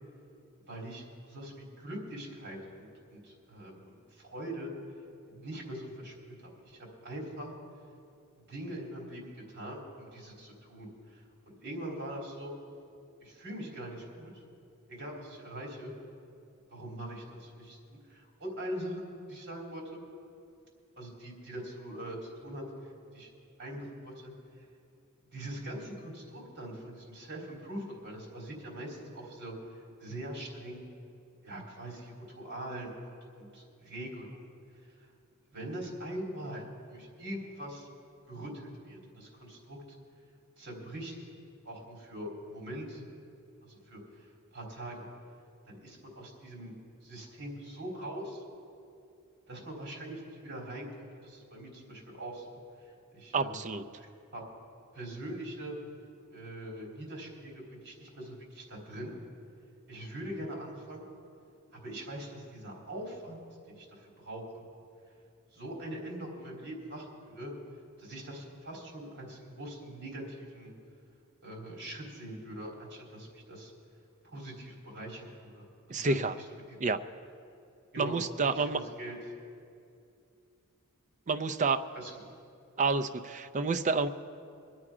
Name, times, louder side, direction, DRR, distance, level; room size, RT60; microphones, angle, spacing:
voice 1, 0.7-4.7 5.3-6.3 6.6-7.5 8.5-9.2 9.5-12.5 13.2-14.3 14.9-15.9 16.7-20.0 21.0-22.6 23.1-23.3 23.6-24.3 25.3-29.5 30.0-30.9 31.4-32.9 33.4-34.5 35.5-36.6 36.9-37.9 38.3-39.8 40.6-41.3 41.6-43.1 43.6-44.0 44.5-45.0 45.7-46.7 47.0-48.4 49.5-50.9 51.2-52.4 53.1-54.5 54.9-55.7 56.3-59.1 59.9-61.0 61.8-63.4 63.7-64.4 65.5-67.5 68.0-70.7 71.4-73.7 74.2-76.4 77.9-78.2 78.4-79.2 81.9-82.1, right 1 dB, 55° right, -2 dB, 3.4 m, -42 dB
voice 2, 53.3-53.8 75.9-76.3 76.8-77.0 78.0-78.8 81.3-81.8 82.8-84.1, right 4 dB, 35° right, 8 dB, 0.5 m, -29 dB
23.5 x 8.8 x 4.9 m, 2.6 s
head